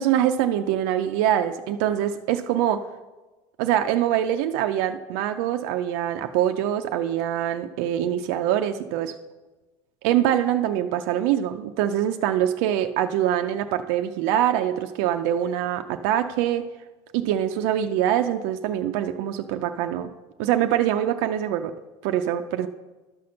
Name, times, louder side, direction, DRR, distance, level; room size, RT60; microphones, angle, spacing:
voice 1, 0.0-2.8 3.6-9.1 10.0-16.6 17.1-20.1 20.4-21.7 22.0-22.7, right 11 dB, 75° right, 8 dB, 0.5 m, -24 dB
12.0 x 4.3 x 6.3 m, 1.2 s
supercardioid pair, 120°, 16 cm